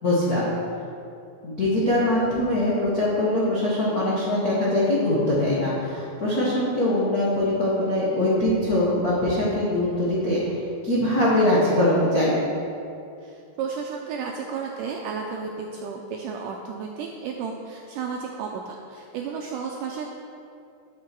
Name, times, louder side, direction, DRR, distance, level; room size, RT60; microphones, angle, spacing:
voice 1, 0.0-0.5 1.4-10.4 10.8-12.4, left 1 dB, 65° left, -8 dB, 0.9 m, -22 dB
voice 2, 13.2-20.1, right 5 dB, 85° right, 1 dB, 1.9 m, -33 dB
11.5 x 6.7 x 4.6 m, 2.6 s
omnidirectional pair, 4.3 m